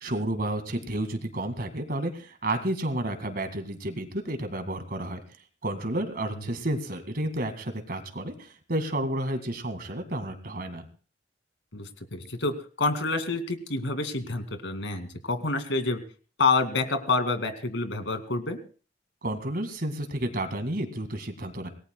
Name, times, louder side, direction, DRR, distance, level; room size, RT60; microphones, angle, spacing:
voice 1, 0.0-5.2 5.6-10.9 19.2-21.7, right 1 dB, 50° right, 8 dB, 2.0 m, -31 dB
voice 2, 11.7-16.0 16.4-18.6, left 3 dB, 90° left, 8 dB, 2.3 m, -28 dB
26.5 x 18.5 x 2.3 m, 0.38 s
head